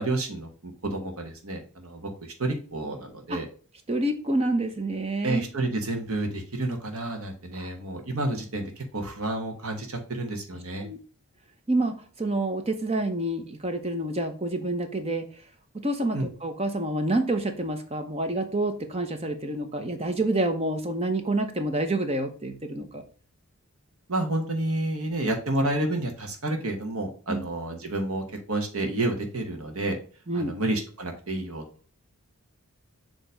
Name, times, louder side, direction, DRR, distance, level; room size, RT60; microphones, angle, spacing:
voice 1, 0.0-3.5 5.2-10.9 16.1-16.3 24.1-30.0 30.3-31.6, right 2 dB, 80° right, 4 dB, 1.3 m, -30 dB
voice 2, 3.9-5.4 7.6-7.7 10.8-11.0 11.7-15.2 15.7-23.0 27.3-27.4 30.3-30.6, right 2 dB, 25° right, 7 dB, 0.9 m, -28 dB
6.8 x 3.0 x 5.0 m, 0.40 s
head